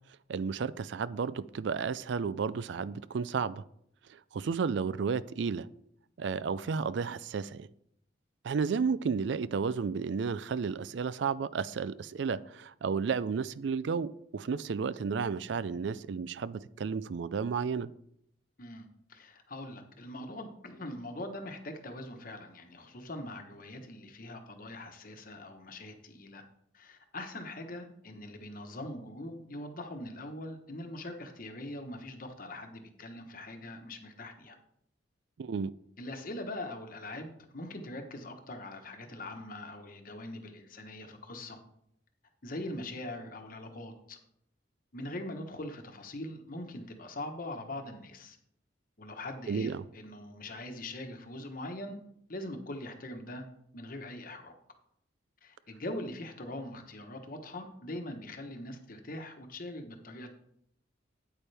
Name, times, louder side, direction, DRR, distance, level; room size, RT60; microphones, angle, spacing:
voice 1, 0.3-3.6 4.3-5.7 6.2-7.7 8.4-17.9 35.4-35.7 49.5-49.8, right 5 dB, 70° right, 18 dB, 0.4 m, -32 dB
voice 2, 18.6-26.4 26.7-34.6 36.0-41.6 42.4-44.2 44.9-48.4 49.0-53.5 53.7-54.5 55.4-60.3, left 1 dB, 50° left, 5 dB, 1.2 m, -42 dB
8.9 x 8.7 x 3.4 m, 0.73 s
head